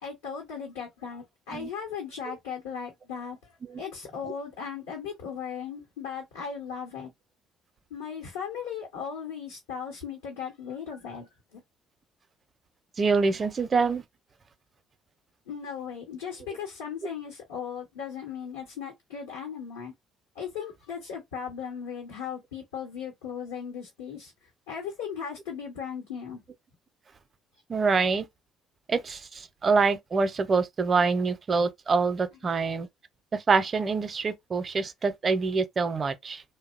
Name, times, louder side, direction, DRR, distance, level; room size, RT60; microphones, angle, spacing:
voice 1, 0.0-3.4 3.8-7.1 7.9-11.6 15.5-19.9 20.3-24.3 24.7-26.4, left 7 dB, 90° left, 0.9 m, -37 dB
voice 2, 13.0-14.0 27.7-28.3 28.9-32.9 33.3-36.4, right 4 dB, 40° right, 0.5 m, -25 dB
2.7 x 2.0 x 2.5 m
hypercardioid pair, 55°, 0 cm